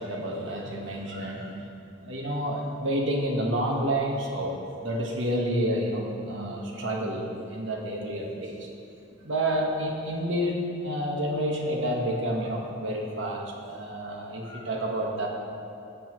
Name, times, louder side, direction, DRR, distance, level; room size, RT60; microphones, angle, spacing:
voice 1, 0.0-1.6 2.0-8.7 9.2-15.3, right 1 dB, 70° right, -1 dB, 1.4 m, -29 dB
12.5 x 8.2 x 3.1 m, 2.6 s
head